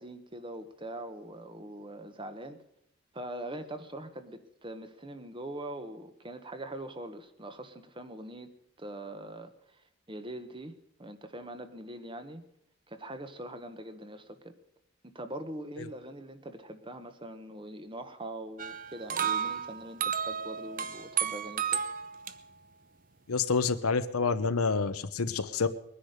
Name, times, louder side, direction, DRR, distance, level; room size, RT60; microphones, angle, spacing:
voice 1, 0.0-2.6 3.1-8.5 8.8-12.4 12.9-14.6 15.0-21.8, right 1 dB, 25° right, 10 dB, 1.2 m, -42 dB
sound 1, 18.6-22.3, right 8 dB, 40° right, 0.8 m, -32 dB
voice 2, 23.3-25.7, left 4 dB, 90° left, 10 dB, 0.8 m, -28 dB
21.0 x 10.0 x 6.6 m, 0.76 s
head